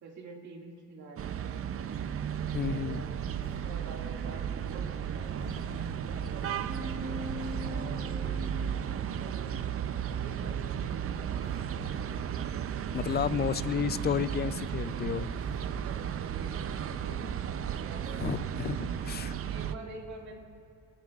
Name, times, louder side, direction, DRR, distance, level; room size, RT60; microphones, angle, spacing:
voice 1, 0.0-1.6 2.6-5.6 5.9-6.9 7.6-11.9 13.3-13.6 15.8-17.3 17.8-18.3 19.3-20.4, right 3 dB, 70° right, 0 dB, 2.0 m, -48 dB
sound 1, 1.2-19.7, right 8 dB, 50° right, 0.6 m, -34 dB
voice 2, 2.5-3.0 12.9-15.3 18.2-19.4, left 8 dB, 35° left, 15 dB, 0.4 m, -32 dB
sound 2, 3.4-19.4, left 2 dB, 65° left, 2.5 m, -53 dB
sound 3, 6.7-11.5, left 1 dB, 5° right, 3.5 m, -44 dB
27.0 x 10.0 x 2.4 m, 2.7 s
cardioid pair, 90°, 30 cm